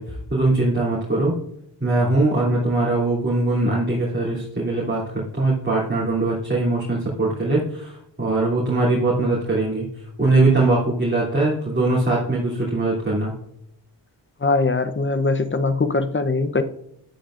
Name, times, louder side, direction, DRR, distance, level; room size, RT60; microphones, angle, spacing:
voice 1, 0.0-1.4 1.8-9.9 10.2-13.3, right 2 dB, 25° right, -8 dB, 3.0 m, -21 dB
voice 2, 14.4-16.6, left 3 dB, 25° left, 11 dB, 0.8 m, -21 dB
10.5 x 8.9 x 2.5 m, 0.72 s
cardioid pair, 50°, 45 cm